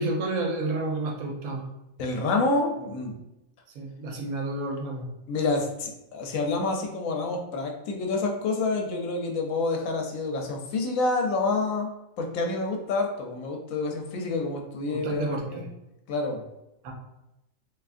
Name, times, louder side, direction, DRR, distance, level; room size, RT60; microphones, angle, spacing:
voice 1, 0.0-1.6 3.7-5.1 14.9-15.7 16.8-16.9, right 2 dB, 80° right, 2 dB, 1.1 m, -30 dB
voice 2, 2.0-3.1 5.3-11.9 12.2-15.7 16.1-16.4, left 3 dB, 75° left, 2 dB, 1.0 m, -28 dB
3.4 x 2.7 x 2.4 m, 0.91 s
omnidirectional pair, 1.5 m